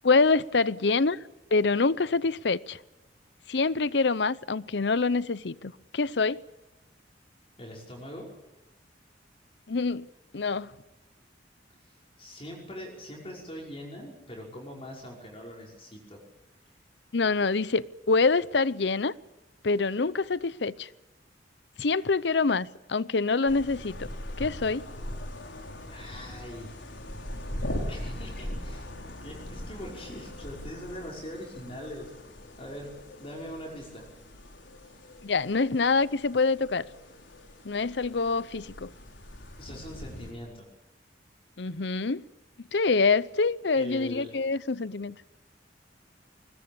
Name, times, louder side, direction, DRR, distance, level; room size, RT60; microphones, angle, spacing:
voice 1, 0.0-1.2 1.5-2.8 3.5-6.4 9.7-10.1 10.3-10.7 17.1-19.1 19.6-20.9 21.8-24.1 24.4-24.9 35.2-36.9 37.6-38.9 41.6-42.2 42.7-45.1, left 4 dB, 70° left, 0.7 m, -25 dB
voice 2, 7.6-8.3 12.2-16.2 25.9-26.7 27.9-28.9 29.2-32.1 32.6-32.9 33.2-34.0 39.6-40.7 43.7-44.3, equal, 30° left, 5.5 m, -42 dB
sound 1, 23.5-40.3, left 1 dB, 90° left, 4.1 m, -40 dB
21.5 x 20.5 x 8.8 m
head